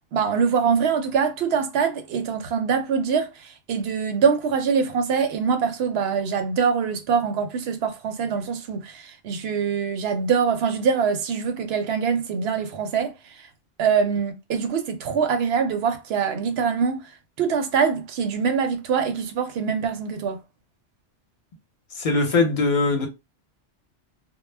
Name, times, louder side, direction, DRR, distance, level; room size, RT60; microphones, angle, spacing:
voice 1, 0.1-13.1 13.8-17.1 17.4-20.4, right 6 dB, 65° right, 0.7 m, -24 dB
voice 2, 21.9-23.1, left 3 dB, 45° left, 0.8 m, -21 dB
2.2 x 2.1 x 3.2 m
omnidirectional pair, 1.2 m